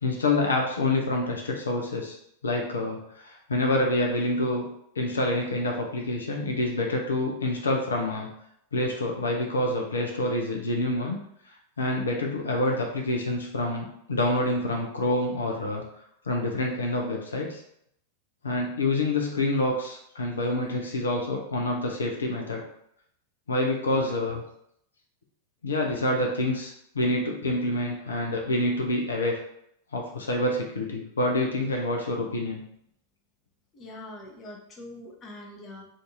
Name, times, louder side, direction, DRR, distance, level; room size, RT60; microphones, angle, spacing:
voice 1, 0.0-2.2 2.4-4.6 5.0-8.3 8.7-11.2 11.8-15.8 16.3-17.6 18.4-22.6 23.5-24.4 25.6-29.4 29.9-32.6, left 2 dB, 70° left, 1 dB, 0.5 m, -27 dB
voice 2, 33.7-35.8, left 1 dB, 25° left, 0 dB, 0.7 m, -43 dB
2.6 x 2.5 x 4.0 m, 0.73 s
figure-of-eight pair, 90°, 0 cm